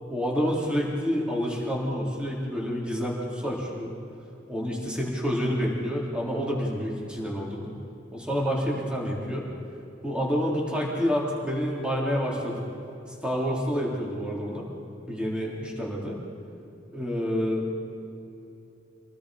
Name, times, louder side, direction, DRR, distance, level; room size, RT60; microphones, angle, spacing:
voice 1, 0.1-3.9 4.5-7.7 8.1-9.5 10.0-12.6 13.2-14.7 15.1-16.2 16.9-17.8, equal, 5° right, -3 dB, 3.7 m, -28 dB
27.5 x 19.0 x 5.0 m, 2.8 s
head